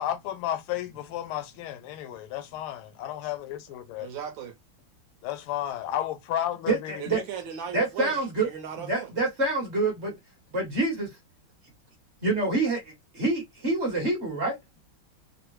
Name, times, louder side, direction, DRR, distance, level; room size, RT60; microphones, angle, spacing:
voice 1, 0.0-4.1 5.2-7.0, left 11 dB, 90° left, 1.5 m, -32 dB
voice 2, 4.0-4.6 7.0-9.1, right 8 dB, 70° right, 1.4 m, -37 dB
voice 3, 6.7-7.2 7.7-8.5 8.9-10.1 10.5-11.1 12.2-14.6, right 2 dB, 40° right, 1.1 m, -26 dB
3.5 x 2.0 x 3.0 m
omnidirectional pair, 2.3 m